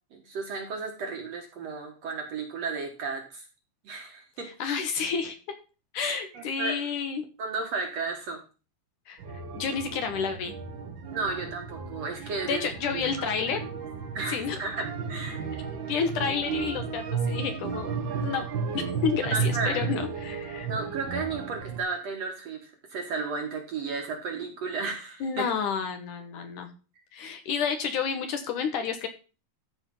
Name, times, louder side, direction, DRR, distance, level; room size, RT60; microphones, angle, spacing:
voice 1, 0.1-3.4 3.8-4.5 6.0-6.9 7.4-8.4 11.1-13.3 13.5-13.7 14.1-15.6 19.2-19.8 20.7-25.4, right 4 dB, 55° right, 3 dB, 2.1 m, -34 dB
voice 2, 4.6-5.4 5.9-7.2 9.1-9.2 9.5-10.5 12.5-13.6 14.3-14.6 15.8-18.5 18.7-20.7 25.2-26.7 27.1-29.1, left 6 dB, 65° left, 7 dB, 2.4 m, -30 dB
sound 1, 9.2-21.8, right 5 dB, 80° right, 1.0 m, -33 dB
13.5 x 5.0 x 5.4 m, 0.34 s
omnidirectional pair, 4.3 m